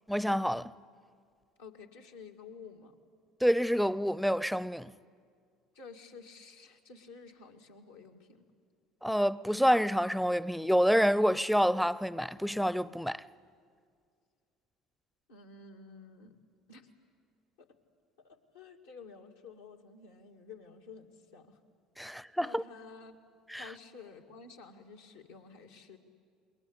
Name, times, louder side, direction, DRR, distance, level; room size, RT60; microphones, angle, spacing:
voice 1, 0.1-0.7 3.4-4.9 9.0-13.2 22.0-22.6 23.5-23.7, equal, ahead, 0.6 m, -28 dB
voice 2, 1.6-2.9 5.7-8.4 15.3-16.4 16.7-16.9 17.6-17.7 18.2-21.6 22.0-23.2 23.6-26.0, left 5 dB, 80° left, 2.2 m, -51 dB
28.0 x 22.0 x 8.5 m
hypercardioid pair, 65°, 0 cm